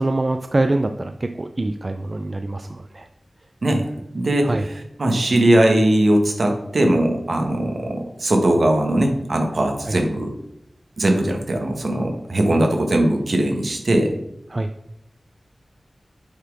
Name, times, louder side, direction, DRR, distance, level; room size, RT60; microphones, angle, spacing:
voice 1, 0.0-3.1 3.7-3.8 4.4-4.7 9.9-10.0 14.5-14.7, right 2 dB, 40° right, 7 dB, 0.4 m, -24 dB
voice 2, 4.1-4.7 5.0-10.3 11.0-14.1, right 1 dB, 65° right, 3 dB, 1.3 m, -19 dB
8.0 x 4.2 x 4.7 m, 0.80 s
wide cardioid pair, 80°, 0 cm